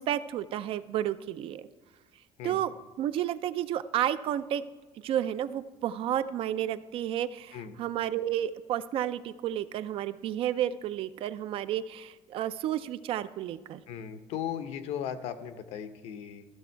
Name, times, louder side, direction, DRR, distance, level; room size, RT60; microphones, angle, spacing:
voice 1, 0.0-1.7 2.4-4.6 5.0-13.8, right 11 dB, 55° right, 14 dB, 0.4 m, -31 dB
voice 2, 13.9-16.5, left 9 dB, 70° left, 11 dB, 0.8 m, -37 dB
14.0 x 6.1 x 4.5 m, 1.3 s
cardioid pair, 155°, 11 cm